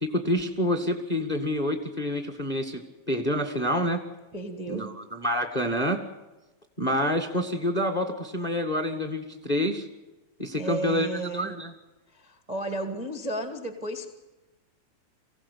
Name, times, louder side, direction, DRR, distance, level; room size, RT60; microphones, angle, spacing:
voice 1, 0.0-2.8 3.1-4.0 4.7-6.0 6.8-9.8 10.4-11.7, equal, 25° left, 5 dB, 0.9 m, -27 dB
voice 2, 4.3-4.9 10.5-11.5 12.1-14.1, right 1 dB, 60° right, 4 dB, 0.4 m, -33 dB
24.5 x 16.5 x 8.5 m, 1.1 s
omnidirectional pair, 4.2 m